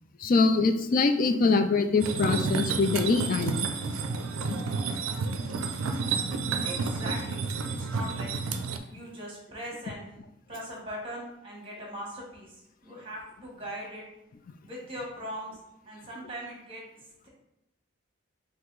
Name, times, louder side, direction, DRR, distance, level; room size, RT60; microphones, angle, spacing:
voice 1, 0.2-3.7 4.5-4.6 7.8-7.9, left 4 dB, 40° left, 8 dB, 0.3 m, -24 dB
sound 1, 2.0-8.8, right 4 dB, 80° right, 0.4 m, -30 dB
voice 2, 6.6-8.4 8.9-10.1 10.5-12.6 12.8-14.0 14.6-15.5 15.8-16.8, equal, 25° right, -2 dB, 1.3 m, -40 dB
4.6 x 2.6 x 3.8 m, 0.84 s
head